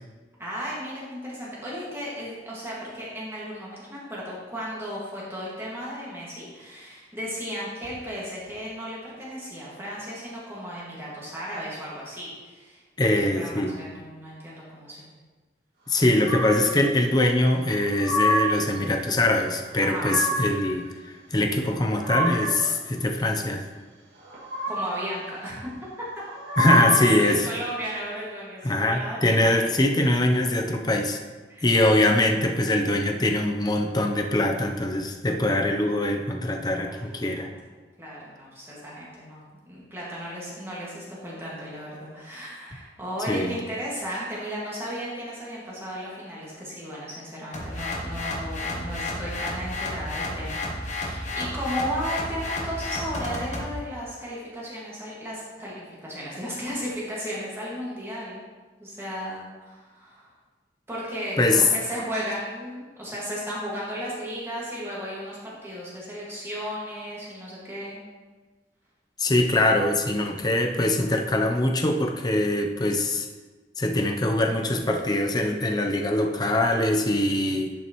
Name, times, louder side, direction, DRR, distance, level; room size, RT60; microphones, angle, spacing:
voice 1, 0.4-15.1 19.8-20.2 24.7-25.7 26.0-26.2 26.8-29.6 31.5-31.7 36.7-37.5 38.0-58.4 58.8-60.3 60.9-68.0, equal, 15° right, -7 dB, 1.9 m, -35 dB
voice 2, 13.0-13.8 15.9-23.7 26.6-27.5 28.6-31.2 31.6-37.5 43.3-43.5 61.4-61.6 69.2-73.3 73.8-77.7, left 1 dB, 25° left, 3 dB, 0.6 m, -23 dB
sound 1, 16.2-16.8 17.7-18.7 19.6-20.6 21.6-22.7 24.2-25.1 26.2-27.3, equal, 65° right, 2.4 m, -27 dB
sound 2, 47.5-53.7, left 2 dB, 45° left, 1.2 m, -32 dB
11.0 x 5.8 x 3.1 m, 1.3 s
head